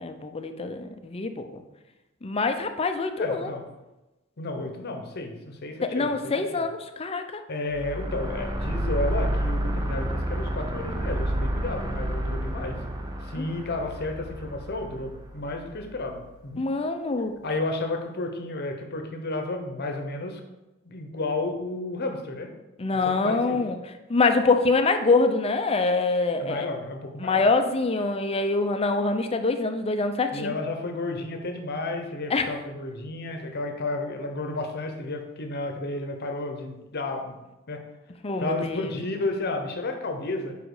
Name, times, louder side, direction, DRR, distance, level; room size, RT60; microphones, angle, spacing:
voice 1, 0.0-1.6 2.2-3.5 5.8-7.4 13.4-13.5 16.6-17.3 22.8-23.8 24.1-26.7 27.2-30.5 32.3-32.6 38.2-39.0, left 3 dB, 30° left, 7 dB, 0.5 m, -25 dB
voice 2, 3.2-3.7 4.4-6.1 7.5-12.8 13.2-16.6 17.4-20.4 20.8-22.5 23.0-23.6 26.4-27.5 30.3-37.4 37.7-37.8 38.4-40.6, left 2 dB, 50° left, 4 dB, 0.9 m, -32 dB
sound 1, 7.7-16.0, right 1 dB, 20° right, 0.6 m, -30 dB
5.1 x 4.9 x 4.8 m, 1.0 s
head